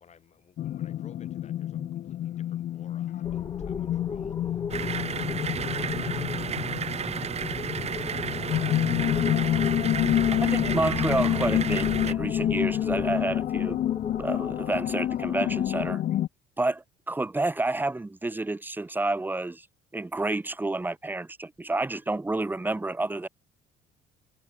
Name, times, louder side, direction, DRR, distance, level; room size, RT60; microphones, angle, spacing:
voice 1, 0.0-7.0 7.4-10.9, left 7 dB, 40° left, 7.7 m, -57 dB
sound 1, 0.6-16.3, left 12 dB, 60° left, 1.1 m, -28 dB
sound 2, 3.2-15.9, left 5 dB, 20° left, 0.5 m, -38 dB
sound 3, 4.7-12.1, right 7 dB, 40° right, 1.5 m, -32 dB
voice 2, 10.4-13.8 14.2-16.0 16.6-19.6 19.9-23.3, right 2 dB, 10° right, 1.3 m, -29 dB
cardioid pair, 110°, 17 cm